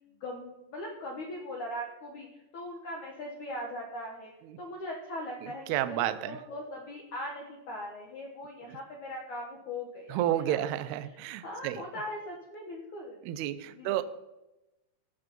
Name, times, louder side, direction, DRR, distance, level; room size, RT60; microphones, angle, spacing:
voice 1, 0.2-4.3 4.6-10.6 11.1-13.2 13.7-14.0, left 1 dB, 65° left, 0 dB, 2.0 m, -40 dB
voice 2, 5.4-6.4 8.7-8.8 10.1-11.8 13.3-14.0, right 13 dB, 80° right, 11 dB, 2.4 m, -31 dB
17.0 x 6.8 x 5.2 m, 0.98 s
omnidirectional pair, 5.2 m